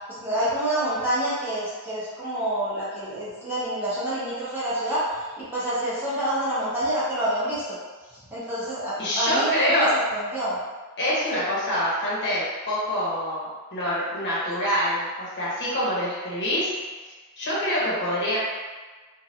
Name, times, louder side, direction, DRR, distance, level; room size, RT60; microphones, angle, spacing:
voice 1, 0.2-5.0 5.4-7.7 8.3-10.6, right 1 dB, 10° right, -11 dB, 1.1 m, -27 dB
voice 2, 9.0-9.9 11.0-16.7 17.4-18.4, equal, 55° left, -7 dB, 0.9 m, -25 dB
3.2 x 2.3 x 2.7 m, 1.3 s
head